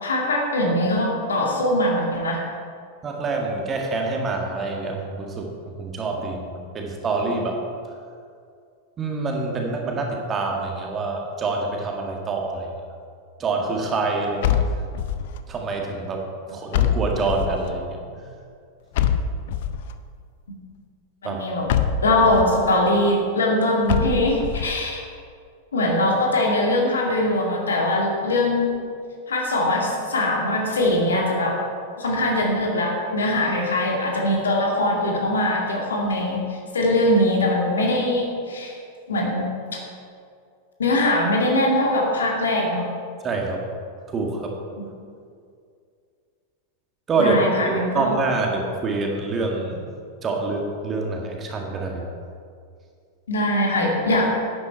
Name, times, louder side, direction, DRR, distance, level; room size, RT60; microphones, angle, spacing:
voice 1, 0.0-2.4 20.5-20.6 21.2-21.6 22.0-25.0 25.7-28.7 29.3-31.6 32.0-36.4 36.7-38.8 39.1-39.5 40.8-42.8 47.2-48.2 53.3-54.3, left 1 dB, 70° left, 0 dB, 2.2 m, -21 dB
voice 2, 3.0-7.6 9.0-12.7 13.4-14.6 15.5-18.2 21.2-21.4 43.2-43.6 44.1-44.6 47.1-49.8 50.2-52.1, right 3 dB, 25° right, 1 dB, 1.8 m, -26 dB
sound 1, 14.4-15.4 16.7-17.7 18.9-19.9 21.7-22.5 23.9-24.7, left 8 dB, 55° left, 0.6 m, -24 dB
11.5 x 9.4 x 4.6 m, 2.3 s
figure-of-eight pair, 90°, 0 cm